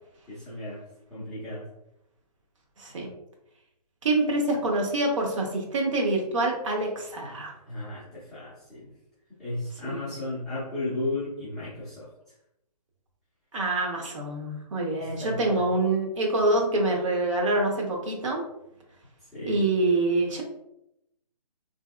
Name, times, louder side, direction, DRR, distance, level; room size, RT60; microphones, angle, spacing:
voice 1, 0.3-0.8 1.1-1.7 7.6-8.9 9.4-12.1 15.0-15.7 19.3-19.6, left 2 dB, ahead, -17 dB, 0.3 m, -34 dB
voice 2, 2.8-3.1 4.0-7.5 9.8-10.0 13.5-18.4 19.5-20.4, right 2 dB, 50° right, 1 dB, 0.8 m, -26 dB
3.1 x 2.7 x 2.3 m, 0.84 s
hypercardioid pair, 155°, 21 cm